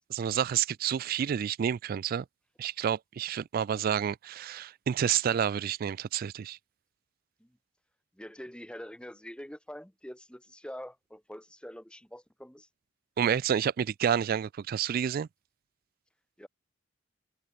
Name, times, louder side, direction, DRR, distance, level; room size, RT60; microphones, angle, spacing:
voice 1, 0.1-2.2 2.6-6.6 13.2-15.3, right 8 dB, 50° right, 0.3 m, -29 dB
voice 2, 8.2-12.7 16.4-16.5, equal, 5° left, 1.9 m, -45 dB
head